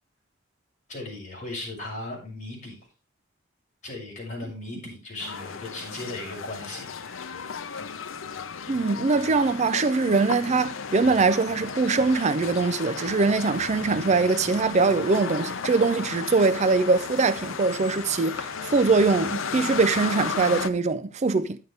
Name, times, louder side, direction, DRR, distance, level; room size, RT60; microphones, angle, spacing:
voice 1, 0.9-2.8 3.8-7.5, left 2 dB, 40° left, 6.2 m, -37 dB
sound 1, 5.2-20.7, left 5 dB, 75° left, 0.7 m, -34 dB
voice 2, 8.7-21.6, right 4 dB, 35° right, 0.5 m, -22 dB
10.5 x 9.5 x 3.3 m
head